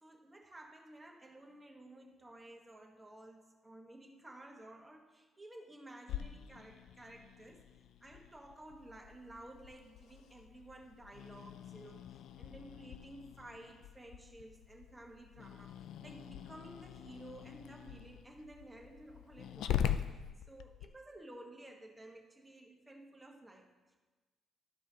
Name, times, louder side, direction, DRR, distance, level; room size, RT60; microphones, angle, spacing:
voice 1, 0.0-7.7 8.0-15.7 16.0-20.2 20.5-23.9, right 1 dB, 15° right, 0 dB, 1.5 m, -54 dB
Growling, 6.1-20.9, left 10 dB, 80° left, 0.4 m, -43 dB
13.0 x 5.0 x 3.7 m, 1.2 s
cardioid pair, 90°, 0 cm